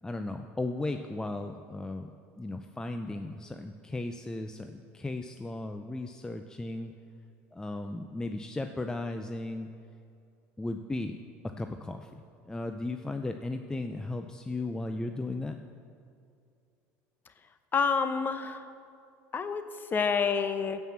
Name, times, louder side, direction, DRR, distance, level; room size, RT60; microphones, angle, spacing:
voice 1, 0.0-2.1 2.4-6.9 7.5-9.7 10.6-12.1 12.4-15.6, left 2 dB, 10° left, 6 dB, 0.5 m, -36 dB
voice 2, 17.7-18.6 19.3-19.6 19.9-20.8, left 5 dB, 30° left, 9 dB, 0.8 m, -28 dB
15.5 x 5.5 x 7.3 m, 2.5 s
supercardioid pair, 110°, 7 cm